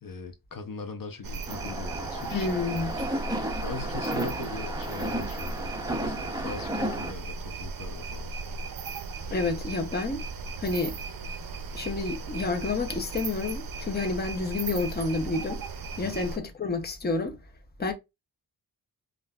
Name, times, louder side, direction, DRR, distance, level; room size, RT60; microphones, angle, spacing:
voice 1, 0.0-2.5 2.8-3.1 3.6-8.3 16.0-16.2, left 4 dB, 55° left, 0.7 m, -40 dB
sound 1, 1.2-16.4, right 4 dB, 60° right, 0.6 m, -37 dB
sound 2, 1.5-7.1, right 1 dB, 10° right, 0.6 m, -33 dB
voice 2, 2.3-3.0 9.3-10.2 10.6-11.0 11.7-15.6 16.0-17.4 17.8-17.9, left 3 dB, 25° left, 0.7 m, -29 dB
5.5 x 2.5 x 2.3 m
wide cardioid pair, 135°, 40 cm